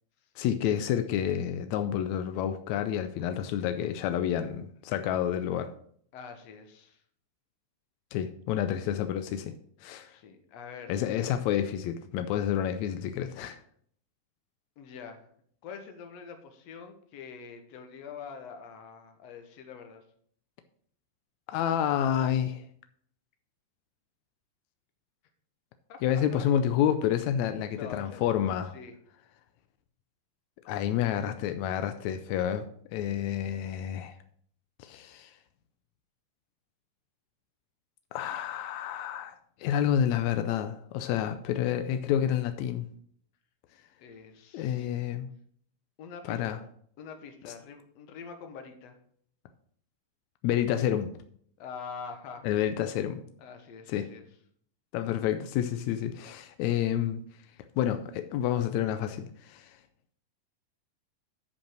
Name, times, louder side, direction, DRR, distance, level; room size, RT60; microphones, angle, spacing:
voice 1, 0.4-5.7 8.1-9.5 9.8-10.1 10.9-13.6 21.5-22.6 26.0-28.7 30.7-32.6 32.9-34.1 34.8-35.3 38.1-42.9 44.5-45.3 46.2-46.6 50.4-51.1 52.4-53.2 53.9-54.1 54.9-57.2 57.8-59.8, left 10 dB, 85° left, 9 dB, 1.6 m, -29 dB
voice 2, 6.1-7.0 10.1-11.0 14.8-15.3 15.6-20.0 25.9-26.0 26.3-26.4 27.7-28.2 28.7-29.0 44.0-45.0 46.0-46.6 47.0-49.0 51.6-52.5 53.4-54.3, left 6 dB, 60° left, 6 dB, 2.0 m, -45 dB
10.5 x 5.4 x 6.1 m, 0.62 s
omnidirectional pair, 3.9 m